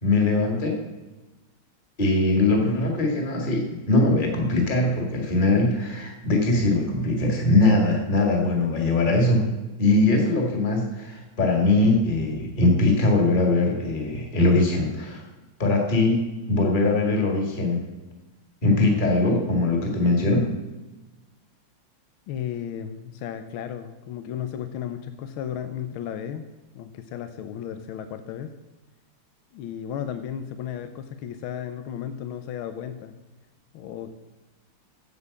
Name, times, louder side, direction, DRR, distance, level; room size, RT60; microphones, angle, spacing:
voice 1, 0.0-0.8 2.0-9.4 9.8-15.2 15.6-17.8 18.6-20.5, left 2 dB, 20° left, 1 dB, 2.1 m, -21 dB
voice 2, 22.3-26.5 26.7-28.5 29.5-33.1 33.7-34.1, left 9 dB, 75° left, 9 dB, 1.5 m, -34 dB
8.3 x 7.5 x 8.4 m, 1.1 s
omnidirectional pair, 2.4 m